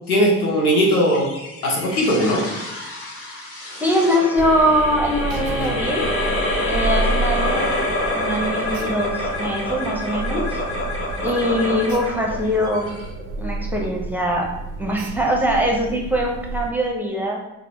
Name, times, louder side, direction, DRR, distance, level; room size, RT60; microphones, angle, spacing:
voice 1, 0.1-1.3 1.6-2.5, equal, 80° left, -1 dB, 0.7 m, -18 dB
sound 1, 1.0-13.6, left 1 dB, 30° left, 1.0 m, -27 dB
voice 2, 3.8-6.0 6.7-7.7 8.2-10.6 11.2-12.9 13.4-14.5 14.8-17.4, equal, 5° right, -1 dB, 0.7 m, -22 dB
Alarm, 4.4-16.7, right 3 dB, 50° right, 0.4 m, -30 dB
5.8 x 2.0 x 2.8 m, 0.95 s
figure-of-eight pair, 40°, 43 cm